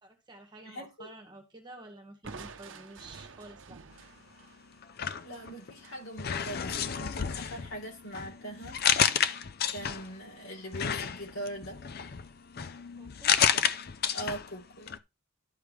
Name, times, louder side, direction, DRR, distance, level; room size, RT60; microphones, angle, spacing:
voice 1, 0.0-3.8 13.0-13.4, right 2 dB, 20° right, 1.8 m, -50 dB
voice 2, 0.6-1.1 5.2-8.8 9.7-11.8 13.5-13.6 14.1-15.0, right 1 dB, 75° left, 3.5 m, -41 dB
Crushing, 2.2-6.0, right 4 dB, 60° right, 0.8 m, -49 dB
sound 1, 4.8-5.8 6.2-10.2 10.7-14.6 14.9-15.0, left 8 dB, 45° left, 0.5 m, -30 dB
12.0 x 5.1 x 3.2 m
head